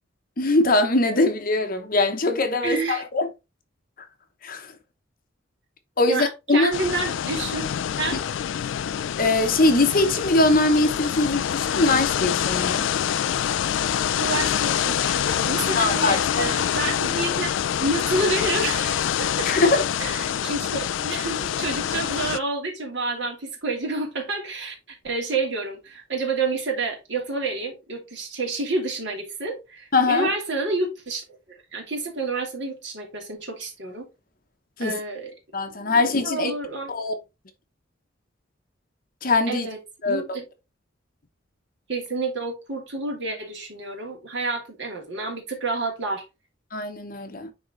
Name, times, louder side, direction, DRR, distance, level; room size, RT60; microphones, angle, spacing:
voice 1, 0.4-3.3 4.4-4.7 6.0-6.7 9.2-12.8 15.7-16.5 19.5-19.8 29.9-30.3 34.8-35.0 35.5-36.5 36.9-37.1 39.2-39.7 40.0-40.2 46.7-47.5, left 2 dB, 45° left, 0.9 m, -22 dB
voice 2, 2.6-3.0 6.1-7.7 8.0-8.2 14.2-19.5 20.0-34.0 34.8-35.3 35.9-36.9 39.5-39.8 40.0-40.4 41.9-46.2, right 3 dB, 60° right, 2.8 m, -29 dB
sound 1, 6.7-22.4, left 9 dB, 75° left, 0.3 m, -26 dB
9.6 x 3.7 x 3.1 m
head